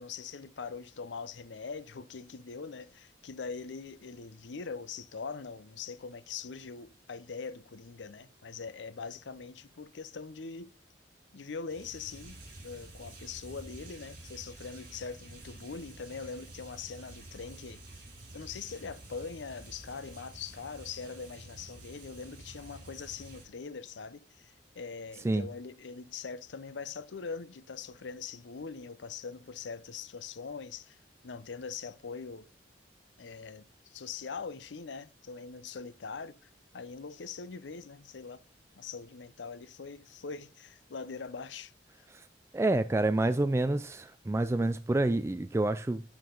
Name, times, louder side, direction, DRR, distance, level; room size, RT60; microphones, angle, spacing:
voice 1, 0.0-10.7 11.3-17.8 18.3-32.5 33.2-38.4 38.8-41.7 42.0-42.1, left 5 dB, 85° left, 0.6 m, -42 dB
sound 1, 11.7-23.5, right 1 dB, 55° right, 4.5 m, -50 dB
voice 2, 42.5-46.0, right 2 dB, 15° right, 0.3 m, -28 dB
12.0 x 4.8 x 3.8 m
head